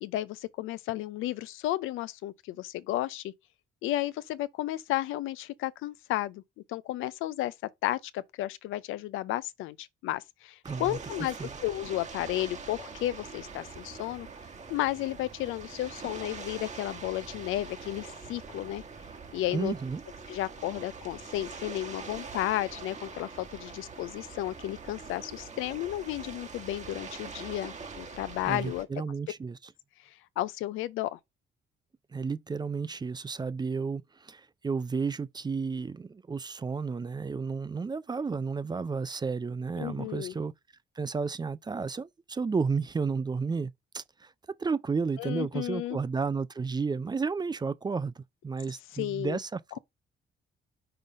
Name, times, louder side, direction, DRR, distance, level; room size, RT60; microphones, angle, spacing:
voice 1, 0.0-3.3 3.8-6.4 6.7-7.5 7.8-11.3 11.6-14.3 14.7-18.8 19.3-19.7 20.3-28.9 30.4-31.2 39.8-40.3 45.2-46.0 48.9-49.4, left 14 dB, 90° left, 0.5 m, -33 dB
voice 2, 10.6-11.0 11.4-11.5 19.5-20.0 28.5-29.7 32.1-40.5 41.0-44.3 44.6-49.8, right 5 dB, 20° right, 0.4 m, -32 dB
sound 1, 10.6-28.8, right 5 dB, 35° right, 1.2 m, -44 dB
5.6 x 3.9 x 4.9 m
cardioid pair, 90°, 20 cm